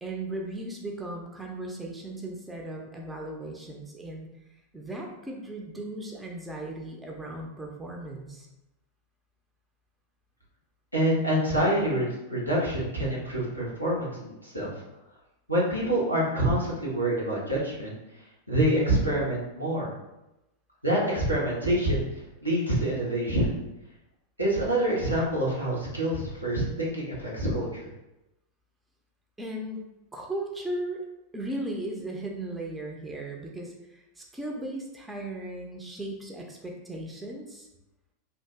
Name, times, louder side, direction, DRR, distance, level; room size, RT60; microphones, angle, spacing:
voice 1, 0.0-4.3 4.7-8.5 29.4-29.8 30.1-31.0 31.3-37.7, right 1 dB, 10° right, 0 dB, 0.5 m, -37 dB
voice 2, 10.9-14.7 15.5-17.9 18.5-19.9 20.8-22.0 22.4-23.5 24.4-27.9, right 1 dB, 90° right, -7 dB, 1.1 m, -26 dB
2.8 x 2.6 x 3.4 m, 0.93 s
figure-of-eight pair, 90°, 0 cm